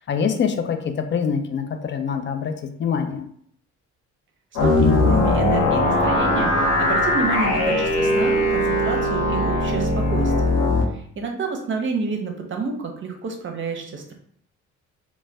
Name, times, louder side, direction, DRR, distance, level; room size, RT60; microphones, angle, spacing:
voice 1, 0.1-3.3, left 6 dB, 40° left, 6 dB, 0.4 m, -25 dB
sound 1, 4.6-10.8, left 1 dB, 90° left, 0.7 m, -20 dB
voice 2, 4.6-10.6 10.9-14.1, right 4 dB, 40° right, 3 dB, 0.6 m, -29 dB
2.5 x 2.1 x 3.3 m, 0.64 s
cardioid pair, 90°, 30 cm